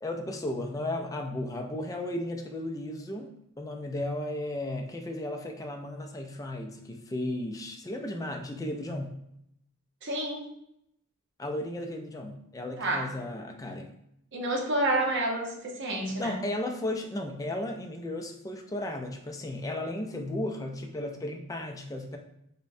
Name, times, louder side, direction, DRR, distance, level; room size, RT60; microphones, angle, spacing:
voice 1, 0.0-3.3 3.6-9.2 11.4-13.9 16.2-22.2, left 1 dB, 15° left, 3 dB, 0.4 m, -34 dB
voice 2, 10.0-10.5 12.8-13.1 14.3-16.4, right 1 dB, 55° right, 1 dB, 0.7 m, -29 dB
5.2 x 2.1 x 2.6 m, 0.78 s
head